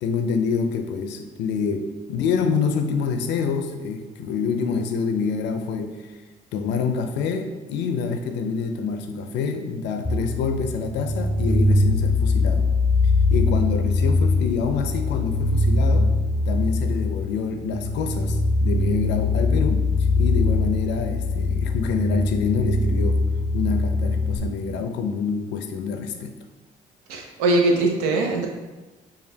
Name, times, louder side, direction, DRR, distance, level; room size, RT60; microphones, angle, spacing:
voice 1, 0.0-6.0 6.5-12.7 13.3-16.2 16.5-19.9 20.2-23.2 23.5-26.3, left 5 dB, 70° left, 6 dB, 0.5 m, -26 dB
sound 1, 10.0-24.4, left 2 dB, 15° left, 0.5 m, -22 dB
voice 2, 27.1-28.5, right 2 dB, 90° right, 2 dB, 0.6 m, -21 dB
5.0 x 2.3 x 2.7 m, 1.2 s
hypercardioid pair, 55°, 19 cm